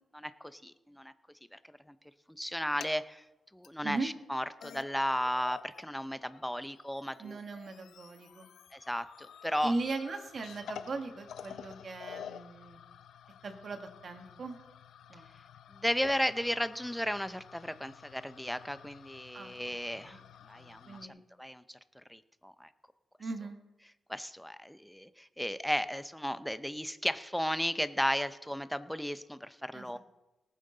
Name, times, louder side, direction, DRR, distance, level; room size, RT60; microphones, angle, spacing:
voice 1, 0.1-1.1 2.4-3.2 3.5-7.4 8.7-9.7 15.8-20.2 20.5-21.0 21.4-21.8 22.1-22.7 24.1-30.0, equal, ahead, 12 dB, 0.5 m, -34 dB
sound 1, 2.5-3.0 3.6-3.7 4.3-4.4 4.6-5.8 6.1-21.1, left 9 dB, 90° left, 0.5 m, -51 dB
voice 2, 7.2-8.5 9.6-12.8 13.4-14.6 15.1-15.2 19.3-19.5 19.9-20.2 20.6-21.2 23.2-23.6 29.7-30.0, right 3 dB, 45° right, 6 dB, 1.4 m, -39 dB
18.5 x 9.1 x 3.9 m, 1.0 s
wide cardioid pair, 125°, 0 cm